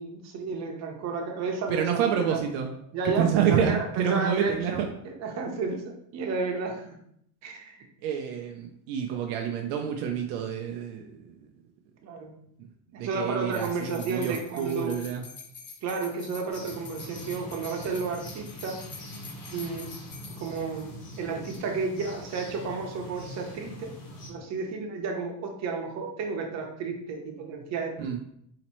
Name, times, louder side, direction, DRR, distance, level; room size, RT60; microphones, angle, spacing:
voice 1, 0.0-2.4 2.9-4.8 5.0-6.9 7.4-7.8 12.0-12.3 12.9-15.0 15.8-18.8 19.5-19.9 20.4-20.9 21.2-23.9 24.3-27.9, right 4 dB, 45° right, 2 dB, 0.9 m, -32 dB
voice 2, 1.7-2.7 3.0-4.9 8.0-11.5 12.6-12.7 13.0-15.3 28.0-28.2, right 8 dB, 80° right, 3 dB, 0.6 m, -28 dB
sound 1, 13.5-21.2 21.4-21.6, left 5 dB, 30° left, 0.6 m, -46 dB
sound 2, 16.5-24.3, left 1 dB, 65° left, 1.5 m, -43 dB
4.1 x 2.9 x 3.0 m, 0.71 s
supercardioid pair, 115°, 37 cm